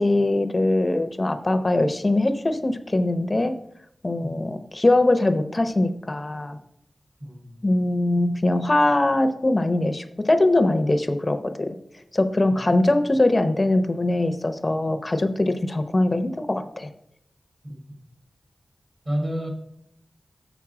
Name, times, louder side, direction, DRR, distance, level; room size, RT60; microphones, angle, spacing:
voice 1, 0.0-3.6 4.0-6.6 7.6-11.8 12.1-16.9, left 2 dB, 35° left, 9 dB, 0.6 m, -22 dB
voice 2, 7.2-7.7 12.5-12.8 17.6-17.8 19.0-19.5, equal, 55° right, 2 dB, 2.5 m, -31 dB
6.9 x 6.0 x 4.8 m, 0.74 s
wide cardioid pair, 65°, 0 cm